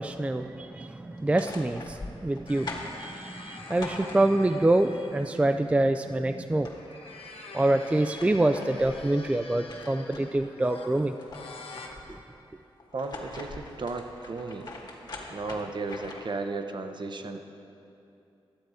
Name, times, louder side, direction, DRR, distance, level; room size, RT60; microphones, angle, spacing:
voice 1, 0.0-6.7 7.5-11.1, right 1 dB, 15° right, 8 dB, 0.3 m, -26 dB
sound 1, 1.1-4.7 6.1-6.2 6.4-7.3 7.8-10.5 10.9-12.2 12.8-16.4, left 2 dB, 45° left, 1.6 m, -43 dB
sound 2, 2.5-6.0 6.6-11.9, left 3 dB, 75° left, 1.0 m, -46 dB
voice 2, 12.9-14.7 15.3-17.4, right 3 dB, 55° right, 7 dB, 0.7 m, -34 dB
11.5 x 7.7 x 4.8 m, 2.8 s
cardioid pair, 70°, 10 cm